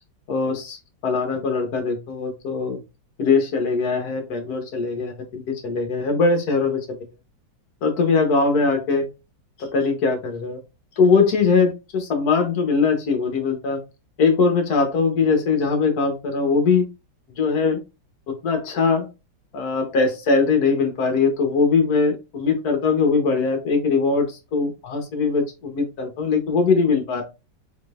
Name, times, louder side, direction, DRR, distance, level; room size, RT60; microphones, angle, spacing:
voice 1, 0.3-0.8 1.0-2.8 3.2-7.0 7.8-9.1 9.6-10.6 11.0-13.8 14.2-16.9 17.3-17.8 18.3-19.1 19.5-27.2, left 4 dB, 60° left, 5 dB, 1.4 m, -21 dB
3.7 x 3.5 x 2.4 m, 0.27 s
omnidirectional pair, 2.1 m